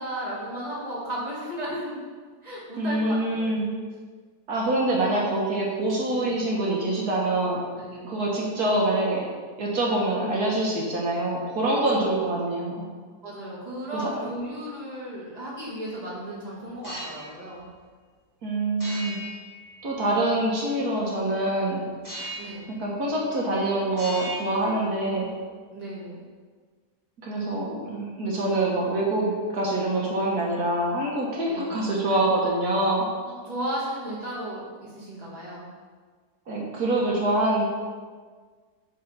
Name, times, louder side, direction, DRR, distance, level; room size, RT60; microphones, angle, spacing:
voice 1, 0.0-2.0 2.4-3.5 6.1-6.5 7.8-8.1 9.7-10.4 11.9-12.4 13.2-17.7 22.4-22.8 25.7-26.3 31.5-31.8 32.1-32.2 33.2-35.7, right 1 dB, 25° right, -7 dB, 2.3 m, -35 dB
voice 2, 2.8-3.7 4.5-7.6 8.0-9.3 9.6-12.8 13.9-14.1 18.4-19.2 19.8-21.8 22.8-25.3 27.2-33.0 36.5-37.6, right 1 dB, 80° right, -3 dB, 1.9 m, -25 dB
sound 1, 16.7-17.3 18.8-20.3 22.0-22.7 23.0-23.6 23.9-25.3, right 1 dB, 15° left, 1.8 m, -38 dB
9.2 x 3.9 x 5.6 m, 1.5 s
omnidirectional pair, 1.6 m